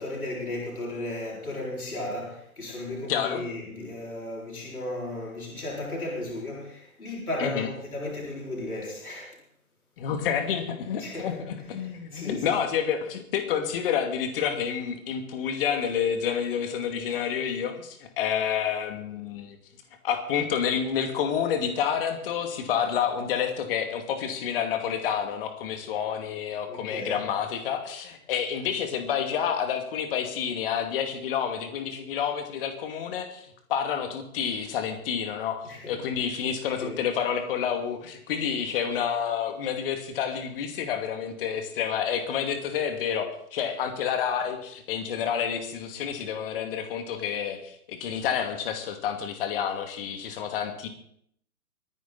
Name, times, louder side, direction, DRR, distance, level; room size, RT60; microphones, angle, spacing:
voice 1, 0.0-9.3 11.0-12.5 26.7-27.2 35.6-36.0 36.8-37.0, left 2 dB, 80° left, -3 dB, 6.4 m, -35 dB
voice 2, 3.1-3.4 7.4-7.7 10.0-19.6 20.0-35.6 35.9-50.9, left 8 dB, 40° left, 6 dB, 2.5 m, -29 dB
23.5 x 10.5 x 4.2 m, 0.69 s
figure-of-eight pair, 125°, 43 cm